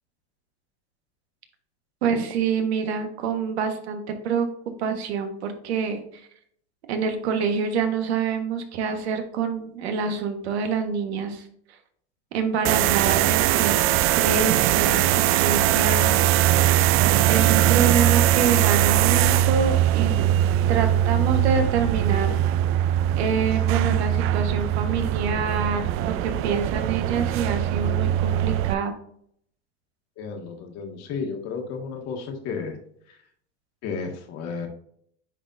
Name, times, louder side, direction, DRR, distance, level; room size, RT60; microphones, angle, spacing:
voice 1, 2.0-4.5 4.8-6.0 6.9-11.4 12.3-13.8 14.1-16.4 17.2-20.2 20.7-22.4 23.2-28.9, right 5 dB, 80° right, 6 dB, 1.5 m, -26 dB
sound 1, 12.6-28.7, right 12 dB, 45° right, 0.4 m, -21 dB
voice 2, 30.2-32.8 33.1-33.2 33.8-34.7, left 5 dB, 50° left, 3 dB, 1.9 m, -32 dB
9.9 x 4.1 x 2.6 m, 0.65 s
hypercardioid pair, 95°, 32 cm